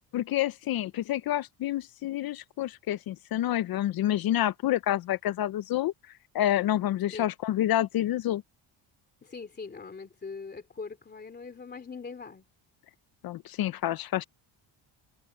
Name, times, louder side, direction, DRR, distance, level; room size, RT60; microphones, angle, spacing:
voice 1, 0.1-5.9 6.3-8.4 13.2-14.2, left 13 dB, 50° left, 0.5 m, -28 dB
voice 2, 9.2-12.5, left 4 dB, 20° left, 2.8 m, -41 dB
cardioid pair, 170°, 48 cm